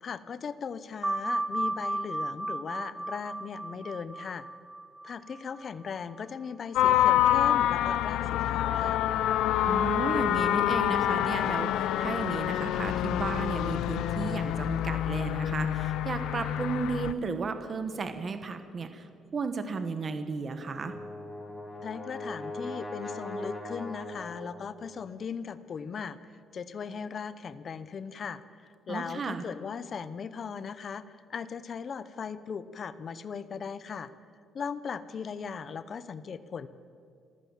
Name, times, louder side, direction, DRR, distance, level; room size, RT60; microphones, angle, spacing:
voice 1, 0.0-4.5 5.0-9.0 21.8-26.2 26.5-31.0 31.3-34.1 34.5-36.7, left 6 dB, 35° left, 14 dB, 0.8 m, -38 dB
sound 1, 1.0-6.2, right 2 dB, 5° right, 0.7 m, -34 dB
sound 2, 6.8-17.1, left 12 dB, 85° left, 0.7 m, -27 dB
voice 2, 9.6-20.9 28.9-29.4, right 4 dB, 30° right, 9 dB, 1.1 m, -34 dB
Brass instrument, 20.5-24.8, left 1 dB, 15° left, 3.0 m, -40 dB
27.0 x 15.0 x 7.4 m, 2.5 s
cardioid pair, 180°, 0 cm